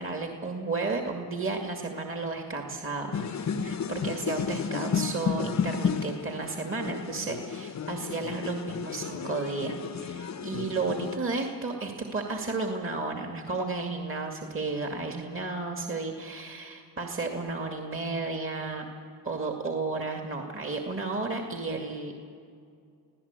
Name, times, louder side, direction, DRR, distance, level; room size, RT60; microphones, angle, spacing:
voice 1, 0.0-18.8 19.2-22.3, right 3 dB, 25° right, 2 dB, 2.4 m, -33 dB
sound 1, 3.1-11.2, left 6 dB, 35° left, 1.0 m, -32 dB
25.5 x 16.5 x 8.3 m, 2.3 s
supercardioid pair, 75°, 50 cm